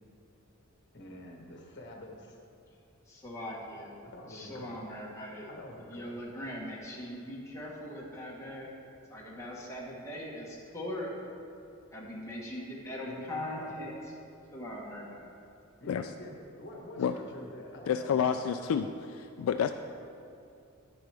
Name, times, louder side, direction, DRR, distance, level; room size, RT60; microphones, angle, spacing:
voice 1, 0.9-2.4 4.0-5.1 5.5-6.1 13.0-13.8 15.8-18.6, left 1 dB, 50° left, 0 dB, 1.3 m, -46 dB
voice 2, 3.1-3.9 4.3-5.5 5.9-8.8 9.1-11.1 11.9-13.9 14.5-15.2, left 1 dB, 15° left, -5 dB, 1.5 m, -40 dB
voice 3, 17.9-19.7, left 7 dB, 70° left, 7 dB, 0.3 m, -29 dB
10.5 x 9.4 x 3.4 m, 2.5 s
head